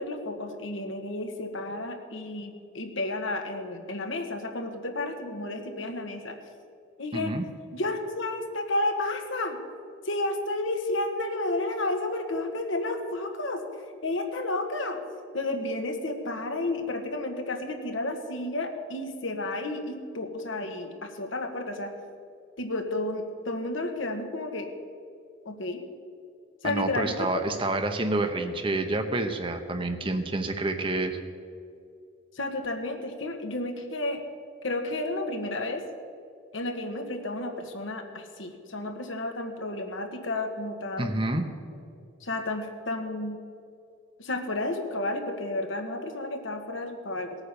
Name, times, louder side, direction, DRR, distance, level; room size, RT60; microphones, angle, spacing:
voice 1, 0.0-6.4 7.0-7.3 7.7-9.6 10.0-13.6 14.0-15.0 15.3-21.9 22.6-24.7 25.4-25.8 26.6-27.4 32.3-34.2 34.6-35.8 36.5-41.2 42.2-43.4 44.2-47.4, left 2 dB, 80° left, 4 dB, 1.6 m, -31 dB
voice 2, 7.1-7.5 26.6-31.2 41.0-41.5, right 2 dB, 25° right, 6 dB, 0.9 m, -28 dB
18.0 x 9.0 x 6.9 m, 2.4 s
head